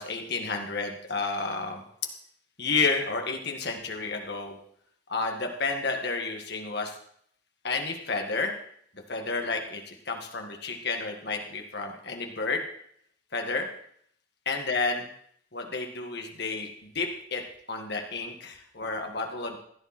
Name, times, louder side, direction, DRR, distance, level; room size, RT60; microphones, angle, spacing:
voice 1, 0.0-1.8 2.6-4.6 5.1-6.9 7.6-8.5 9.1-12.6 13.3-13.7 14.5-15.1 15.5-17.4 17.7-19.6, left 4 dB, 55° left, 3 dB, 2.0 m, -31 dB
16.0 x 10.5 x 4.4 m, 0.65 s
head